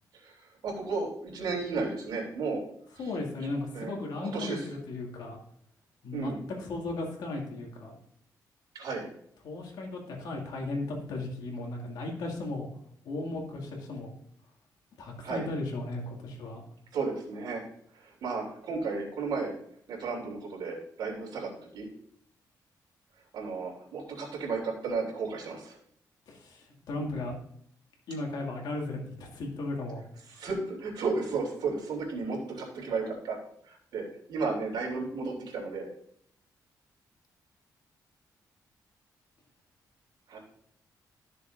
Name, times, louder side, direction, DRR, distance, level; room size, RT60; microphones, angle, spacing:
voice 1, 0.1-2.6 2.9-3.1 3.7-4.7 6.1-6.4 8.7-9.1 15.2-15.5 16.9-17.6 17.9-19.5 19.9-21.9 23.3-25.8 30.3-33.4 33.6-35.9 40.3-40.4, right 4 dB, 90° right, -1 dB, 3.0 m, -34 dB
voice 2, 3.0-5.4 6.0-6.3 6.6-8.0 9.4-12.7 13.0-14.1 15.0-16.6 26.3-27.4 28.1-30.0, left 2 dB, 80° left, 1 dB, 2.2 m, -36 dB
13.0 x 6.7 x 2.6 m, 0.67 s
cardioid pair, 120°, 7 cm